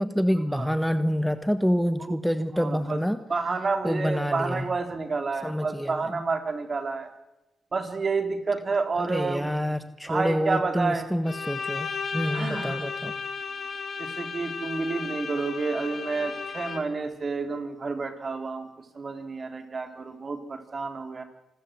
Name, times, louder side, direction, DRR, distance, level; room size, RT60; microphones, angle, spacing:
voice 1, 0.0-3.2 3.8-4.7 5.4-6.2 9.0-13.1, equal, ahead, 11 dB, 1.5 m, -27 dB
voice 2, 2.5-3.0 3.3-7.1 7.7-9.5 10.1-11.1 12.3-12.9 14.0-18.7 18.9-21.2, right 4 dB, 45° right, 7 dB, 3.7 m, -29 dB
Bowed string instrument, 11.2-17.1, left 5 dB, 55° left, 3.0 m, -34 dB
27.0 x 14.0 x 8.0 m, 0.94 s
supercardioid pair, 50°, 0 cm